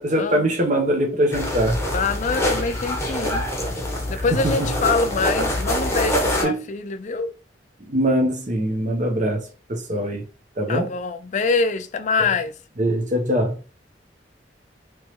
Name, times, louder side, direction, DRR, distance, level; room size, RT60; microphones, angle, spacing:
voice 1, 0.0-1.8 4.1-4.7 6.4-6.7 7.8-10.2 10.6-11.0 12.2-12.3 12.8-13.6, right 1 dB, 45° right, 0.8 m, -23 dB
sound 1, 1.3-6.4, left 1 dB, 15° left, 0.8 m, -25 dB
voice 2, 1.9-3.5 3.8-7.3 10.7-12.5, left 4 dB, 45° left, 0.4 m, -25 dB
3.4 x 3.0 x 3.0 m
head